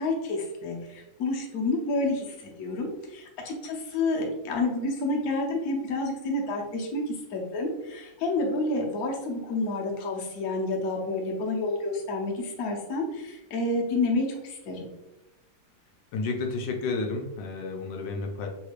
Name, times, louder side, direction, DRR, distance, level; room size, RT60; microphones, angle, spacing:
voice 1, 0.0-14.9, left 2 dB, 65° left, 0 dB, 1.1 m, -29 dB
voice 2, 16.1-18.5, left 3 dB, 85° left, 2 dB, 1.3 m, -31 dB
3.4 x 3.1 x 2.4 m, 0.93 s
omnidirectional pair, 1.9 m